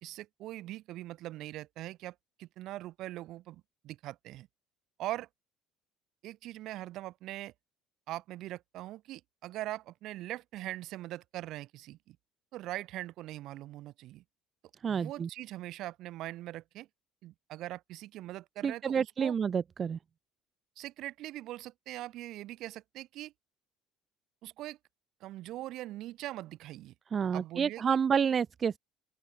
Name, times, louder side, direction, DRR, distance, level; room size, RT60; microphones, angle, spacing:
voice 1, 0.0-4.5 5.0-5.3 6.2-7.5 8.1-12.2 12.5-14.2 14.9-16.9 17.2-19.3 20.8-23.3 24.4-24.8 25.2-26.9 27.3-28.0, right 15 dB, 65° right, 3.8 m, -42 dB
voice 2, 14.8-15.3 18.6-20.0 27.1-28.8, right 7 dB, 40° right, 0.3 m, -29 dB
open air
supercardioid pair, 85°, 0 cm